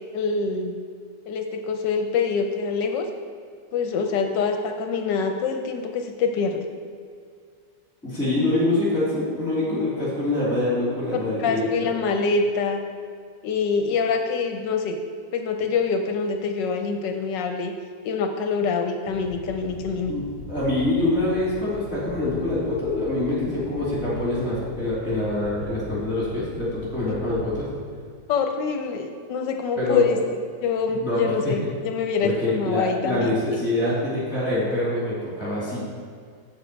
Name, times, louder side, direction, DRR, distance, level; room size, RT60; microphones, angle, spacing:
voice 1, 0.1-0.8 1.3-3.1 3.7-6.6 11.4-12.8 13.4-15.0 15.3-17.7 18.0-20.1 28.3-33.4, left 5 dB, 75° left, 5 dB, 1.2 m, -25 dB
voice 2, 8.0-11.9 20.1-27.7 29.8-30.1 31.0-31.5 32.2-35.8, left 2 dB, 5° left, -7 dB, 2.3 m, -25 dB
sound 1, 19.1-27.6, left 1 dB, 70° right, 3.1 m, -39 dB
7.5 x 7.1 x 4.5 m, 2.1 s
omnidirectional pair, 2.0 m